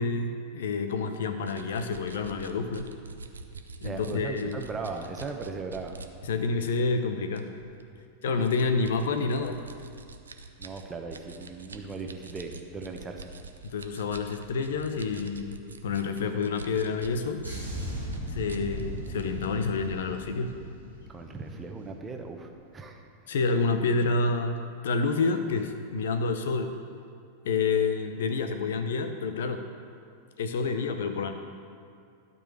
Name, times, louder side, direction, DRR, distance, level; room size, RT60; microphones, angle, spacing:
voice 1, 0.0-2.9 3.8-4.6 6.2-7.5 8.2-9.6 13.6-15.6 15.8-17.4 18.3-20.6 23.3-24.6 24.8-26.7 27.4-29.6 30.4-31.3, left 4 dB, 60° left, 7 dB, 0.7 m, -28 dB
sound 1, 1.4-6.1 6.6-6.8 7.3-7.8 8.5-17.2 17.6-19.6, right 4 dB, 75° right, 0.6 m, -45 dB
voice 2, 3.8-6.0 10.6-13.3 21.1-23.0, right 4 dB, 20° right, 4 dB, 1.0 m, -38 dB
sound 2, 17.4-22.0 22.2-22.5, equal, 90° left, 2.8 m, -37 dB
12.0 x 5.5 x 6.6 m, 2.4 s
figure-of-eight pair, 90°, 0 cm